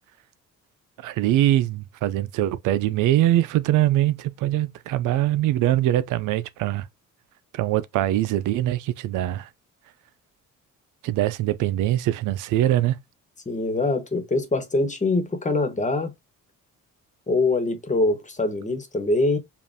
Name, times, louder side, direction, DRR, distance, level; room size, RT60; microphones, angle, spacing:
voice 1, 1.0-6.9 7.5-9.5 11.0-13.0, right 13 dB, 90° right, 0.5 m, -22 dB
voice 2, 13.5-16.1 17.3-19.4, left 2 dB, 25° left, 1.2 m, -23 dB
5.2 x 2.5 x 2.7 m
cardioid pair, 90°, 30 cm